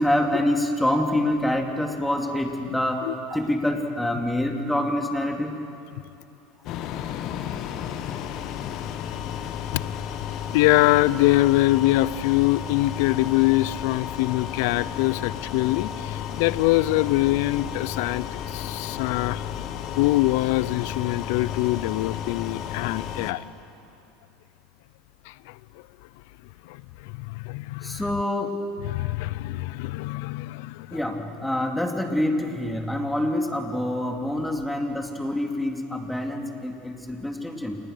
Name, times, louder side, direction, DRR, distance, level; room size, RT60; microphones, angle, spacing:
voice 1, 0.0-3.0 3.3-5.6 27.8-28.6 30.9-37.8, left 1 dB, 5° left, 3 dB, 2.8 m, -26 dB
sound 1, 6.6-23.3, left 9 dB, 55° left, 1.5 m, -33 dB
voice 2, 10.5-19.5 20.0-23.4 25.3-25.8 26.6-28.1 28.8-31.0, left 18 dB, 70° left, 20 dB, 0.5 m, -24 dB
28.5 x 20.0 x 6.7 m, 2.7 s
hypercardioid pair, 95°, 0 cm